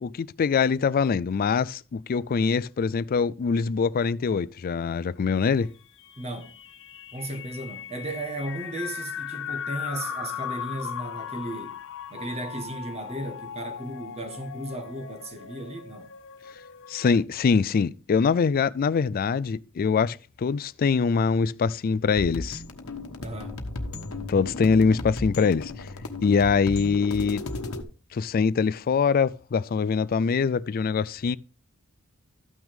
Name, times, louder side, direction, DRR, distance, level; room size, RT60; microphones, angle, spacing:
voice 1, 0.0-5.7 16.9-22.6 24.3-25.9 26.2-27.4 28.1-31.4, left 5 dB, 45° left, 0.3 m, -23 dB
sound 1, 6.0-17.1, left 8 dB, 60° left, 0.7 m, -38 dB
voice 2, 6.2-6.6 7.1-11.8 12.1-16.1 23.2-23.6, right 1 dB, 30° right, 1.5 m, -35 dB
sound 2, 22.2-27.8, left 2 dB, 75° left, 1.1 m, -35 dB
13.5 x 6.0 x 3.6 m
head